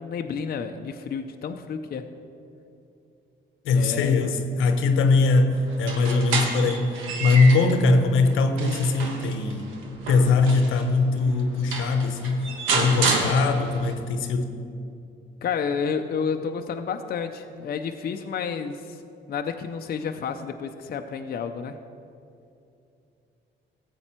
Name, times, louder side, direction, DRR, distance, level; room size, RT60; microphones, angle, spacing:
voice 1, 0.0-2.1 3.7-4.4 15.4-19.0 19.3-21.8, left 6 dB, 50° left, 5 dB, 0.6 m, -30 dB
voice 2, 3.6-9.7 10.1-14.5, left 3 dB, 85° left, 8 dB, 0.9 m, -21 dB
sound 1, 5.7-7.8 8.3-10.9 11.4-11.5 11.7-13.9, right 4 dB, 90° right, 1.3 m, -29 dB
14.5 x 7.7 x 4.4 m, 2.7 s
cardioid pair, 90°, 20 cm